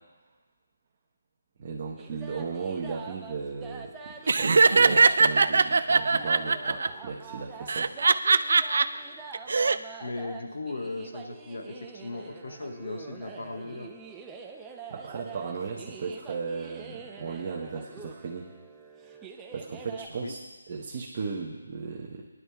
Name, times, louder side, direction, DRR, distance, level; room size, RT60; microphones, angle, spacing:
voice 1, 1.6-7.9 14.9-18.5 19.5-20.4 20.7-22.3, right 5 dB, 35° right, -2 dB, 1.0 m, -36 dB
sound 1, 2.0-20.1, right 5 dB, 10° right, 0.5 m, -45 dB
Laughter, 4.3-6.9 7.7-8.8 9.3-9.8, right 4 dB, 60° right, 0.4 m, -20 dB
voice 2, 10.0-13.9 20.2-20.3, left 2 dB, 70° left, 4 dB, 1.3 m, -37 dB
20.5 x 11.0 x 2.3 m, 1.2 s
figure-of-eight pair, 165°, 0 cm